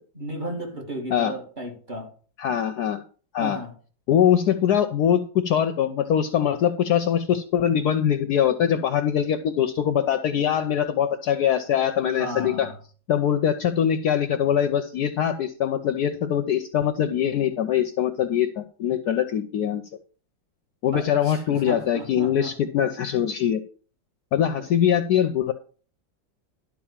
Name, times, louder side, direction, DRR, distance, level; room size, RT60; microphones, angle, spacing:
voice 1, 0.1-2.1 3.4-3.7 12.1-12.7 20.9-22.5 24.6-24.7, right 1 dB, 25° right, -1 dB, 2.5 m, -34 dB
voice 2, 2.4-3.0 3.3-3.6 4.1-12.7 13.1-19.8 20.8-23.6 24.3-25.5, left 9 dB, 70° left, 9 dB, 1.0 m, -22 dB
11.5 x 4.4 x 7.2 m, 0.41 s
omnidirectional pair, 2.0 m